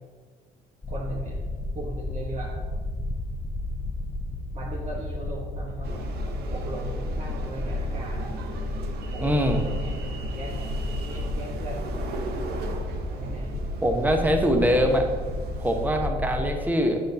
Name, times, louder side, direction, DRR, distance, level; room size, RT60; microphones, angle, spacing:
sound 1, 0.8-16.5, left 2 dB, 15° left, 0.6 m, -32 dB
voice 1, 0.9-1.4 1.7-2.5 4.5-8.2 9.1-11.9 13.1-13.6, right 2 dB, 45° right, -3 dB, 1.2 m, -38 dB
sound 2, 5.8-15.9, right 4 dB, 70° right, 0.9 m, -39 dB
voice 2, 9.2-9.6 13.8-15.1 15.6-17.0, equal, 10° right, 4 dB, 1.0 m, -23 dB
8.0 x 5.7 x 3.9 m, 1.5 s
cardioid pair, 110°, 17 cm